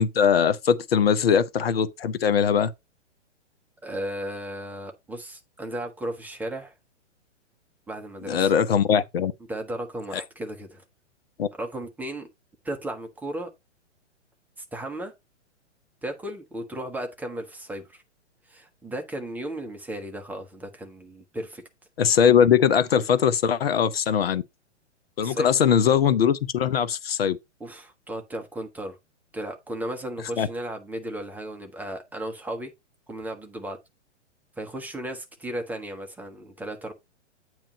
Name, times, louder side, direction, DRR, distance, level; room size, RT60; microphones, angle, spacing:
voice 1, 0.0-2.7 8.3-9.3 11.4-11.5 22.0-24.4 25.2-27.4 30.4-30.5, left 7 dB, 55° left, 0.6 m, -21 dB
voice 2, 3.8-6.7 7.9-8.5 9.5-10.8 11.6-12.3 12.6-13.5 14.6-15.1 16.0-18.0 18.5-21.6 25.2-25.6 27.6-29.0 29.3-32.7 33.1-33.8 34.6-36.9, right 1 dB, 5° right, 0.8 m, -35 dB
8.7 x 3.1 x 5.0 m
figure-of-eight pair, 115°, 35 cm